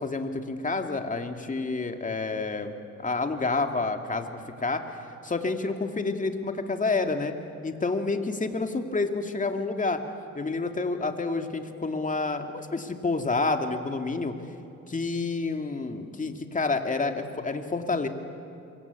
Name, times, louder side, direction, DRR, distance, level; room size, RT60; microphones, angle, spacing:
voice 1, 0.0-2.7 3.0-4.8 5.2-7.3 7.6-10.0 10.3-14.3 14.9-18.1, left 3 dB, 25° left, 5 dB, 2.3 m, -29 dB
27.0 x 23.5 x 8.4 m, 2.6 s
cardioid pair, 90°, 30 cm